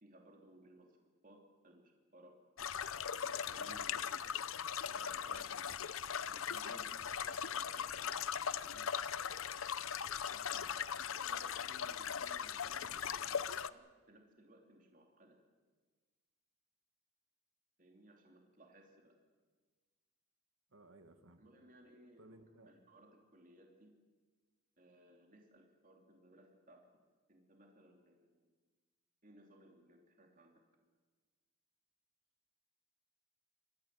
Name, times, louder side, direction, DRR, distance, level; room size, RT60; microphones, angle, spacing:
voice 1, 0.0-1.0 1.2-2.4 3.2-4.4 4.9-5.9 6.3-8.1 8.6-8.9 10.7-10.8 11.1-13.4 13.7-15.4 17.8-19.2 21.4-23.9 24.8-26.8 27.3-28.5 29.2-30.5, right 1 dB, 40° right, 2 dB, 3.1 m, -62 dB
sound 1, 2.6-13.7, left 8 dB, 70° left, 0.7 m, -39 dB
voice 2, 10.3-10.8 20.7-21.4 22.2-22.7, right 2 dB, 70° right, 8 dB, 1.6 m, -60 dB
27.5 x 14.0 x 9.4 m, 1.4 s
head